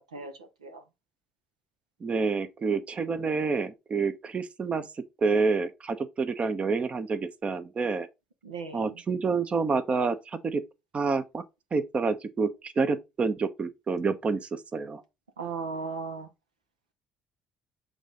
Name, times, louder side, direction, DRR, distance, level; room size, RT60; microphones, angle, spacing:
voice 1, 0.1-0.8 8.4-9.0 15.4-16.3, right 4 dB, 85° right, 1.0 m, -37 dB
voice 2, 2.0-4.9 5.2-8.1 8.7-10.6 10.9-11.4 11.7-15.0, right 4 dB, 35° right, 1.1 m, -28 dB
8.0 x 3.8 x 3.9 m
figure-of-eight pair, 50°, 3 cm